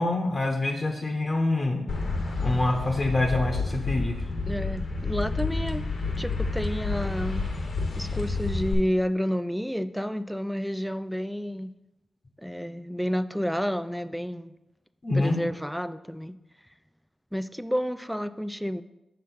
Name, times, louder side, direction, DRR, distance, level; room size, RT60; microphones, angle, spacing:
voice 1, 0.0-1.8 2.4-4.2 15.0-15.4, left 2 dB, 45° left, 2 dB, 0.8 m, -25 dB
sound 1, 1.9-8.7, left 3 dB, 70° left, 1.1 m, -29 dB
voice 2, 4.5-5.8 6.2-7.5 8.0-11.7 12.4-14.6 15.1-16.4 17.3-18.8, equal, ahead, 13 dB, 0.3 m, -30 dB
5.9 x 3.7 x 5.5 m, 0.94 s
cardioid pair, 65°, 0 cm